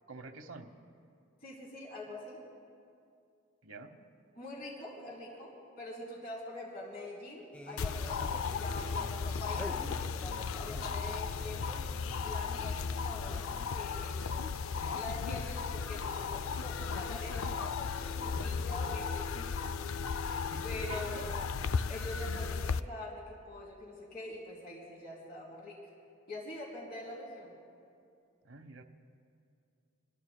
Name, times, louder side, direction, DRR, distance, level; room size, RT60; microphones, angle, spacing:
voice 1, 0.1-0.7 3.6-3.9 14.3-14.4 20.5-21.3 28.4-28.8, right 3 dB, 75° right, 6 dB, 1.1 m, -47 dB
voice 2, 1.4-2.4 4.3-11.8 12.2-13.4 13.7-14.5 14.9-19.8 20.6-21.4 21.9-25.7 26.3-27.5, left 1 dB, 45° left, -4 dB, 3.6 m, -44 dB
sound 1, 7.5-14.0, left 1 dB, 5° left, 0.5 m, -49 dB
sound 2, 7.8-22.8, left 5 dB, 80° left, 0.4 m, -35 dB
28.0 x 21.5 x 2.3 m, 2.5 s
head